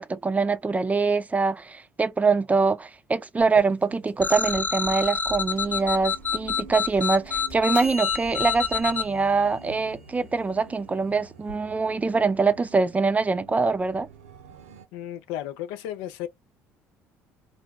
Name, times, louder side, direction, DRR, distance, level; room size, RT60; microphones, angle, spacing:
voice 1, 0.0-14.1, right 4 dB, 20° right, 0.4 m, -24 dB
sound 1, 3.4-11.6, right 1 dB, 90° left, 1.0 m, -43 dB
sound 2, 4.2-9.0, left 6 dB, 25° left, 0.6 m, -27 dB
sound 3, 5.5-14.9, right 5 dB, 85° right, 0.5 m, -48 dB
voice 2, 14.9-16.3, left 12 dB, 70° left, 0.5 m, -34 dB
2.5 x 2.2 x 3.3 m
hypercardioid pair, 60°, 7 cm